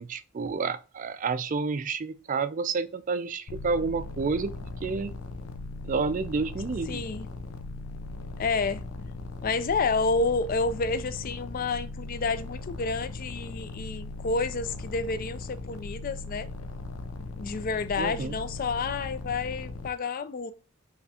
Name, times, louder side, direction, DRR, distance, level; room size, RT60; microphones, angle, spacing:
voice 1, 0.0-4.5 4.8-5.1 5.8-7.0 18.0-18.3, right 4 dB, 35° right, 0.3 m, -29 dB
sound 1, 3.5-19.9, left 2 dB, 90° left, 0.6 m, -39 dB
voice 2, 6.9-7.3 8.4-8.8 9.4-16.5 17.3-20.5, left 4 dB, 40° left, 0.4 m, -29 dB
5.5 x 3.4 x 2.8 m
head